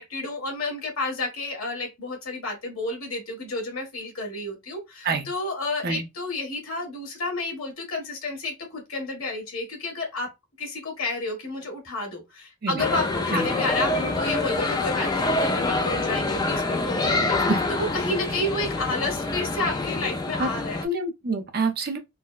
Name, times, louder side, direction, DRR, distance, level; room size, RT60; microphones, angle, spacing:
voice 1, 0.0-10.3 10.6-20.8, left 2 dB, 70° left, 1.5 m, -31 dB
sound 1, 12.8-20.8, left 2 dB, 20° left, 0.3 m, -26 dB
voice 2, 20.8-22.0, right 3 dB, 45° right, 0.6 m, -26 dB
3.9 x 2.1 x 2.3 m
head